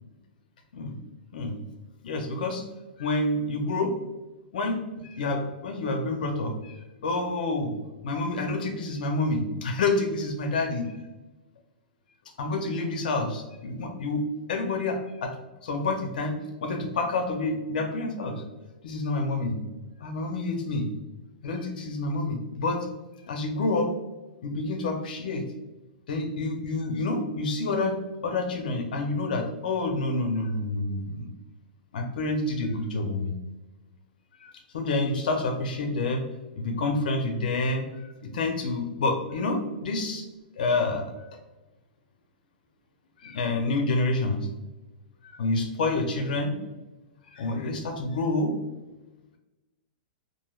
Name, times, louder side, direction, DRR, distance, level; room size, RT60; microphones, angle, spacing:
voice 1, 2.0-2.6 3.0-4.0 4.5-7.7 8.0-10.9 12.4-14.2 14.5-15.3 15.6-18.4 18.8-19.6 20.0-20.9 21.4-22.9 23.3-23.9 24.4-25.4 26.1-28.0 28.2-31.3 31.9-33.3 34.4-36.3 36.6-38.1 38.3-40.3 40.6-41.1 43.2-44.5 45.3-46.5 47.3-48.6, left 2 dB, 60° left, 4 dB, 0.5 m, -28 dB
3.1 x 2.5 x 2.3 m, 1.1 s
supercardioid pair, 180°, 5 cm